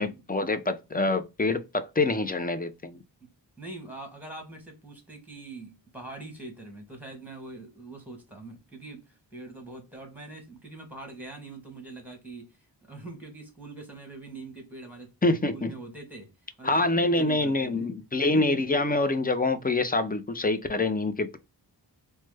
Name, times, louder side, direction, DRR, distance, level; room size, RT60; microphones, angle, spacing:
voice 1, 0.0-3.0 15.2-15.7 16.6-21.4, left 2 dB, 20° left, 0.5 m, -26 dB
voice 2, 3.6-12.5 12.9-15.1 15.5-16.3 16.6-17.9, right 2 dB, 5° right, 1.4 m, -43 dB
3.0 x 2.2 x 3.3 m
wide cardioid pair, 45°, 44 cm